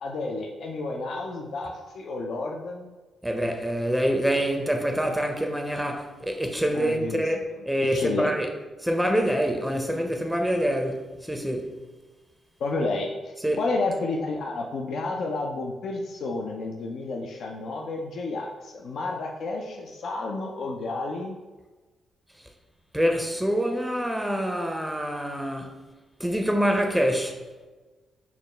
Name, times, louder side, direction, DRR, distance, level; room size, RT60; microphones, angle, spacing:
voice 1, 0.0-2.9 6.7-7.2 7.5-7.6 7.9-8.3 12.6-21.4, left 3 dB, 65° left, 0.4 m, -31 dB
voice 2, 3.2-8.5 8.8-11.8 13.4-13.6 22.9-25.8 26.2-27.4, equal, 5° right, 0.5 m, -26 dB
4.7 x 2.1 x 3.3 m
hypercardioid pair, 45°, 0 cm